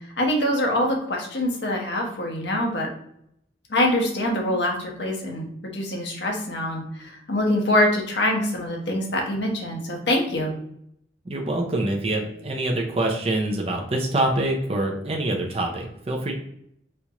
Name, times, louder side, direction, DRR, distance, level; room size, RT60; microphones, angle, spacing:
voice 1, 0.2-2.9 3.7-10.5, left 1 dB, 65° left, 0 dB, 0.9 m, -24 dB
voice 2, 11.3-16.3, right 1 dB, 30° right, 0 dB, 0.5 m, -25 dB
4.3 x 2.4 x 2.8 m, 0.73 s
head